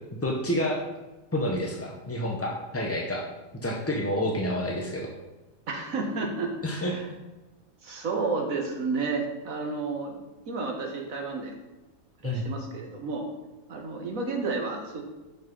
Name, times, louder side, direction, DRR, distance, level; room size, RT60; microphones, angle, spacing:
voice 1, 0.1-0.8 1.3-3.2 3.6-5.1 6.6-7.0 12.2-12.4, left 1 dB, 20° left, -1 dB, 0.4 m, -29 dB
voice 2, 5.7-7.0 7.8-10.1 10.4-11.5 12.2-13.3 13.7-15.0, right 3 dB, 60° right, 2 dB, 1.6 m, -31 dB
6.0 x 6.0 x 5.3 m, 1.1 s
omnidirectional pair, 1.6 m